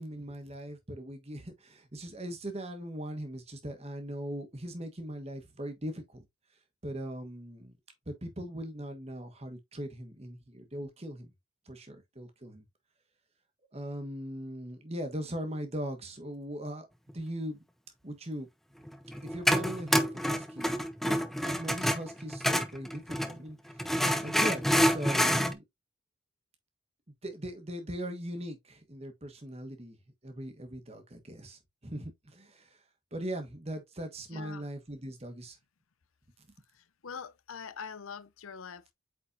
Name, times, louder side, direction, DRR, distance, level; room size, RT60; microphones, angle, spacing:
voice 1, 0.0-6.2 6.8-7.8 8.1-11.3 11.7-12.6 13.7-16.9 17.1-17.6 18.0-18.5 19.2-20.7 21.0-23.9 24.2-25.6 27.2-30.0 30.2-32.8 33.1-35.6, equal, 30° right, 1.4 m, -40 dB
sound 1, 18.9-23.4 23.8-25.5, equal, ahead, 0.5 m, -27 dB
voice 2, 34.3-34.6 37.0-38.9, left 6 dB, 80° left, 0.6 m, -43 dB
8.4 x 4.2 x 2.7 m
head